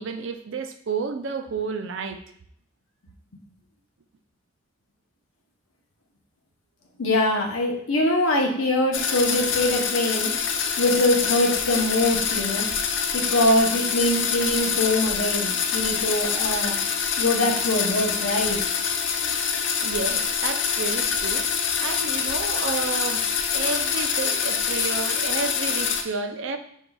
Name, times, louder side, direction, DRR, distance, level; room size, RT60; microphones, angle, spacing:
voice 1, 0.0-2.2 19.8-21.5 21.8-23.3 23.5-26.6, right 5 dB, 65° right, 7 dB, 0.4 m, -31 dB
voice 2, 7.0-10.3 10.8-12.7 13.1-16.8 17.2-18.6, left 1 dB, 75° left, 0 dB, 0.8 m, -23 dB
sound 1, 8.9-26.0, left 7 dB, 60° left, 0.4 m, -25 dB
5.4 x 3.6 x 2.3 m, 0.67 s
head